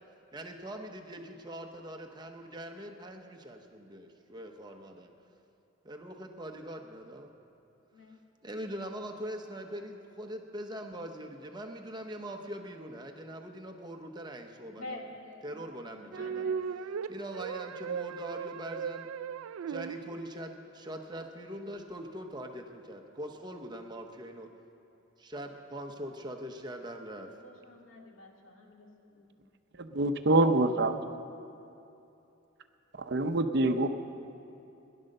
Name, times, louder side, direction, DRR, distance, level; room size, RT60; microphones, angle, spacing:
voice 1, 0.3-5.1 5.8-7.3 8.4-15.0 15.4-16.5 17.1-19.1 19.7-24.5 25.2-27.3, right 1 dB, 20° right, 4 dB, 0.8 m, -42 dB
voice 2, 14.7-16.6 27.4-29.4, left 1 dB, 70° left, -1 dB, 2.2 m, -48 dB
strange-song, 16.1-20.5, right 7 dB, 85° right, 0.3 m, -37 dB
voice 3, 29.8-30.9 32.9-33.9, right 2 dB, 55° right, 8 dB, 0.7 m, -25 dB
17.0 x 11.0 x 6.6 m, 2.8 s
head